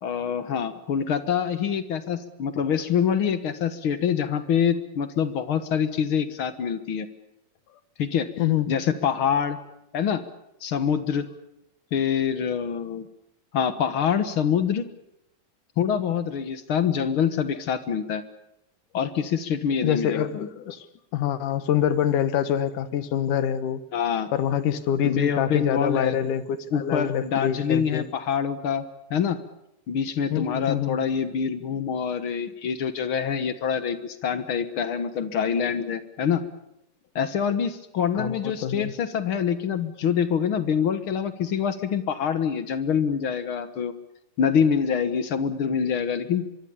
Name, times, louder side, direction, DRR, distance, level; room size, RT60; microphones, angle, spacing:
voice 1, 0.0-7.1 8.0-8.3 8.7-9.6 9.9-10.2 10.6-11.3 11.9-13.1 13.5-14.8 15.8-18.2 18.9-20.5 23.9-24.3 25.0-26.2 26.7-28.8 29.1-29.4 29.9-36.4 37.1-43.9 44.4-46.5, left 7 dB, 55° left, 11 dB, 1.7 m, -25 dB
voice 2, 19.8-20.9 21.1-23.8 24.3-28.1 30.3-31.0 38.1-38.9, left 10 dB, 75° left, 13 dB, 2.7 m, -25 dB
24.0 x 24.0 x 7.1 m, 0.83 s
omnidirectional pair, 3.8 m